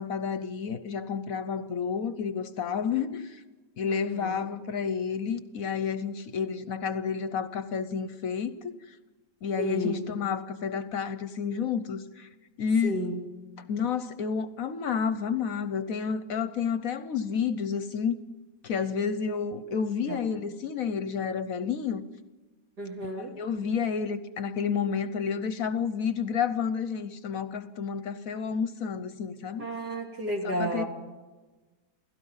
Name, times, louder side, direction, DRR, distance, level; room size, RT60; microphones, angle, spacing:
voice 1, 0.0-3.4 3.8-8.7 9.4-12.3 12.6-13.0 13.7-18.2 18.6-22.0 23.2-29.7 30.4-30.8, left 6 dB, 60° left, 1.1 m, -30 dB
voice 2, 3.9-4.4 9.6-10.0 12.8-13.2 20.1-20.2 22.8-23.4 29.6-30.9, equal, 70° right, 3.6 m, -32 dB
29.0 x 17.0 x 5.6 m
omnidirectional pair, 1.8 m